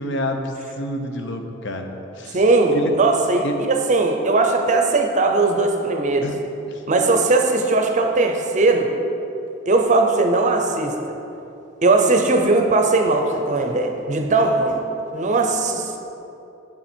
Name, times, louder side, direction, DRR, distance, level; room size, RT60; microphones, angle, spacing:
voice 1, 0.0-1.9 2.2-2.4 2.7-2.9 3.4-3.6 6.2-6.3 6.7-6.8, equal, 65° left, 5 dB, 0.8 m, -28 dB
voice 2, 2.3-6.3 6.9-8.9 9.7-11.2 11.8-14.8 15.1-16.0, right 3 dB, 40° right, 3 dB, 0.6 m, -19 dB
7.9 x 7.1 x 4.4 m, 2.9 s
head